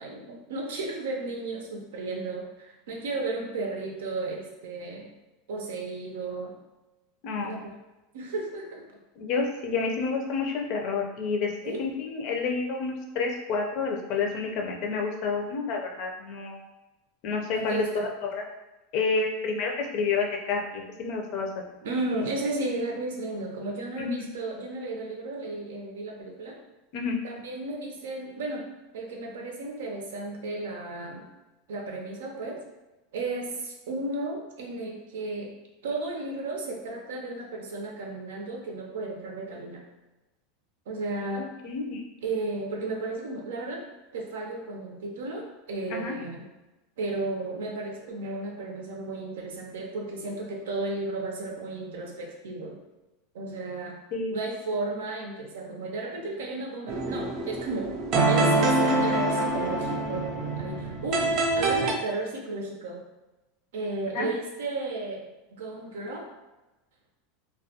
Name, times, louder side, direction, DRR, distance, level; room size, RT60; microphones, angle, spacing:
voice 1, 0.0-5.1 5.5-6.5 7.4-7.6 8.1-8.8 11.6-11.8 17.5-18.1 21.8-26.6 27.2-28.6 28.9-31.3 31.7-32.6 33.1-35.5 35.8-39.8 40.9-41.5 42.2-43.8 44.1-46.5 47.0-52.8 53.3-54.0 54.3-57.9 58.3-63.0 63.7-65.2 65.5-66.3, right 2 dB, 90° right, 1 dB, 0.6 m, -34 dB
voice 2, 9.2-11.5 11.8-16.6 17.2-18.3 18.9-21.7 24.0-24.1 26.9-27.2 41.4-42.0 45.9-46.1 54.1-54.3 64.1-64.3, left 4 dB, 50° left, 2 dB, 0.5 m, -29 dB
sound 1, 56.9-61.9, right 2 dB, 45° right, 0.5 m, -25 dB
2.3 x 2.2 x 2.7 m, 1.1 s
supercardioid pair, 140°, 0 cm